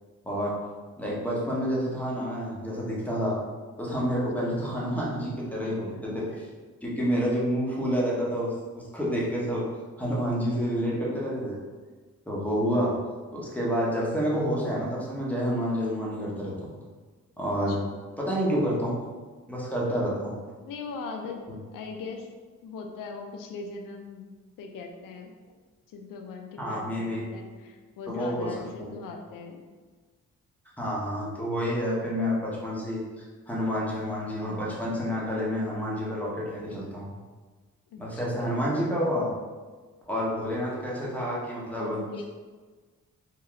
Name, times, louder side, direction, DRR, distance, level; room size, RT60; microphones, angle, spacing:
voice 1, 1.0-3.4 3.8-6.3 6.8-8.5 8.9-9.6 10.0-11.6 12.3-12.9 13.3-16.7 17.4-17.8 18.2-19.0 19.5-20.4 26.6-27.3 28.1-28.5 28.9-29.0 30.8-37.1 38.0-39.3 40.1-42.0, equal, 5° left, -5 dB, 1.1 m, -29 dB
voice 2, 5.6-6.2 17.7-18.0 20.6-21.4 21.7-22.3 22.6-24.3 24.6-25.3 25.9-29.6 37.9-38.5 41.7-42.2, left 4 dB, 90° left, 3 dB, 0.5 m, -40 dB
3.7 x 2.3 x 3.2 m, 1.4 s
cardioid pair, 65°, 32 cm